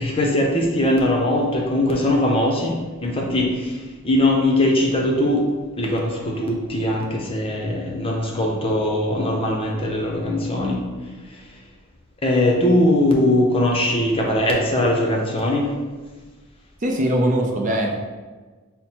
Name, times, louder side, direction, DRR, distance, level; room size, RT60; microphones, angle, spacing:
voice 1, 0.0-5.5 5.8-10.9 11.3-11.5 12.2-15.7, left 1 dB, 25° left, -1 dB, 0.7 m, -21 dB
voice 2, 16.8-18.0, right 1 dB, 35° right, 1 dB, 0.5 m, -21 dB
5.8 x 2.1 x 4.3 m, 1.4 s
head